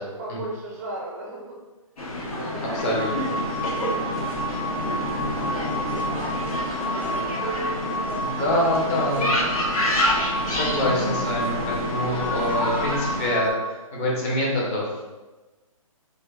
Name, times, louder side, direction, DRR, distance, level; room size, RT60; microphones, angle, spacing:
voice 1, 0.0-1.6 2.2-4.1 4.5-8.7, right 2 dB, 30° right, -3 dB, 0.4 m, -39 dB
sound 1, 2.0-13.3, left 1 dB, 90° left, 0.9 m, -28 dB
Bowed string instrument, 2.5-7.0, left 2 dB, 65° left, 0.6 m, -35 dB
voice 2, 2.7-3.4 8.2-9.3 10.5-13.5 13.9-15.0, left 1 dB, 25° left, -5 dB, 0.7 m, -25 dB
sound 2, 2.8-13.5, right 1 dB, 45° left, 1.1 m, -31 dB
4.5 x 2.1 x 2.3 m, 1.2 s
hypercardioid pair, 155°, 18 cm